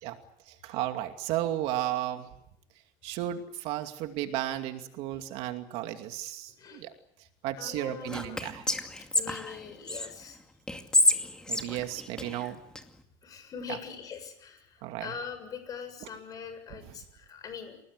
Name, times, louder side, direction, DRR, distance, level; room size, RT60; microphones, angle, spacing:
voice 1, 0.5-2.3 3.0-6.9 7.4-8.7 11.5-12.6 13.7-13.8 14.8-15.1, right 13 dB, 65° right, 6 dB, 2.5 m, -34 dB
voice 2, 7.6-8.4 9.1-10.4 13.2-17.8, left 6 dB, 35° left, 9 dB, 7.2 m, -42 dB
Whispering, 8.1-10.1 10.7-12.8, left 1 dB, 5° left, 2.3 m, -28 dB
28.5 x 19.0 x 8.2 m, 0.74 s
cardioid pair, 145°, 11 cm